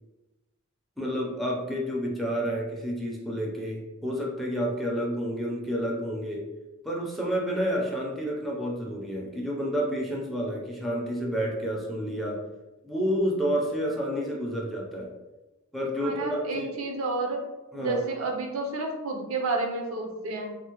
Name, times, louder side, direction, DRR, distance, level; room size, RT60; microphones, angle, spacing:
voice 1, 1.0-6.5 6.8-12.4 12.8-15.1 15.7-16.8 17.7-18.1, equal, ahead, -3 dB, 0.5 m, -30 dB
voice 2, 16.0-17.4 17.7-20.6, right 3 dB, 70° right, 1 dB, 0.6 m, -30 dB
3.5 x 2.1 x 2.9 m, 1.1 s
head